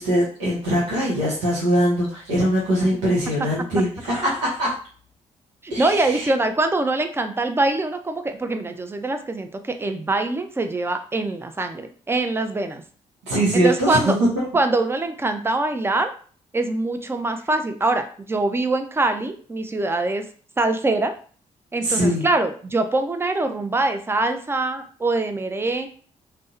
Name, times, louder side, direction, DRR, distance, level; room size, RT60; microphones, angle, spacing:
voice 1, 0.0-4.7 5.7-6.3 13.3-14.4 21.8-22.3, equal, 90° right, -7 dB, 0.7 m, -22 dB
voice 2, 5.6-12.8 13.5-14.2 14.5-16.1 16.5-20.2 20.6-21.1 21.7-25.9, right 2 dB, 15° right, 7 dB, 0.4 m, -23 dB
2.6 x 2.0 x 2.4 m, 0.43 s
hypercardioid pair, 45°, 16 cm